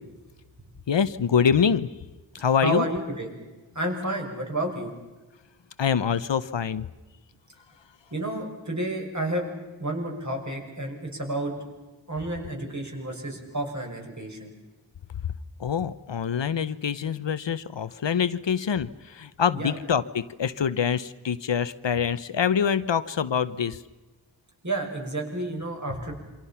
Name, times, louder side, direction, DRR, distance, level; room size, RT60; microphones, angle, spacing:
voice 1, 0.9-1.9 2.4-2.8 5.8-6.9 15.6-23.8, left 7 dB, 70° left, 14 dB, 0.9 m, -25 dB
voice 2, 2.6-3.3 3.7-4.9 8.1-9.5 9.8-11.5 12.1-14.5 19.5-19.7 24.6-26.2, right 1 dB, 40° right, 1 dB, 6.4 m, -30 dB
28.0 x 25.5 x 5.8 m, 1.2 s
wide cardioid pair, 90°, 45 cm